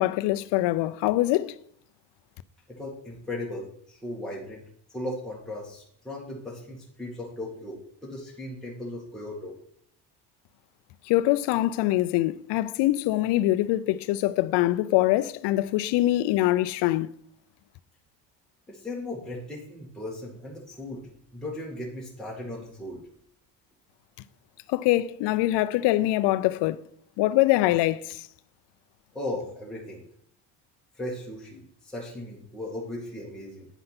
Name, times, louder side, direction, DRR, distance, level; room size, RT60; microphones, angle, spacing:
voice 1, 0.0-1.6 11.1-17.1 24.7-26.8 27.2-28.2, left 16 dB, 70° left, 0.6 m, -24 dB
voice 2, 2.7-4.6 4.9-9.5 18.7-21.0 21.3-23.0 29.1-30.0 31.0-33.7, left 1 dB, ahead, 2.1 m, -37 dB
9.1 x 5.4 x 5.8 m
cardioid pair, 105°, 43 cm